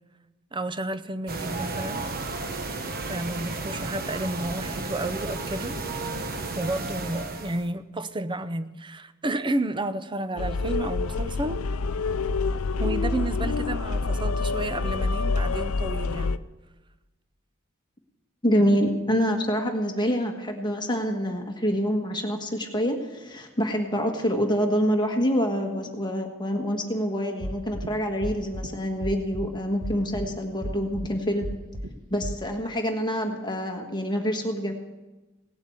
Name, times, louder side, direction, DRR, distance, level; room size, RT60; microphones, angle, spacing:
voice 1, 0.5-2.0 3.1-5.8 6.5-11.6 12.8-16.4, right 2 dB, 25° right, 12 dB, 0.7 m, -31 dB
sound 1, 1.3-7.7, right 3 dB, 45° right, 1.2 m, -33 dB
sound 2, 10.4-16.4, left 4 dB, 80° left, 0.5 m, -27 dB
voice 2, 18.4-31.5 32.1-34.7, equal, 20° left, 3 dB, 1.4 m, -26 dB
sound 3, 27.4-27.9 28.2-28.7 29.0-29.5 29.8-30.3 30.6-31.1 31.4-31.9 32.2-32.3, equal, 65° right, 1.2 m, -32 dB
17.5 x 7.9 x 8.5 m, 1.1 s
head